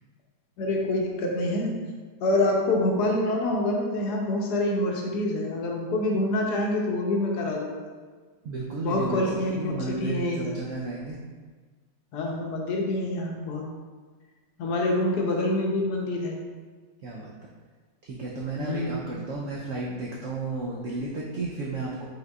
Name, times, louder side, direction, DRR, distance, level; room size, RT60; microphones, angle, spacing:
voice 1, 0.6-1.7 2.2-7.8 8.8-10.5 12.1-13.7 14.6-16.4 18.6-19.0, left 1 dB, 70° left, 0 dB, 1.1 m, -26 dB
voice 2, 8.4-11.2 17.0-17.3 18.0-22.1, right 3 dB, 80° right, -3 dB, 0.7 m, -33 dB
5.3 x 3.7 x 2.3 m, 1.4 s
omnidirectional pair, 1.9 m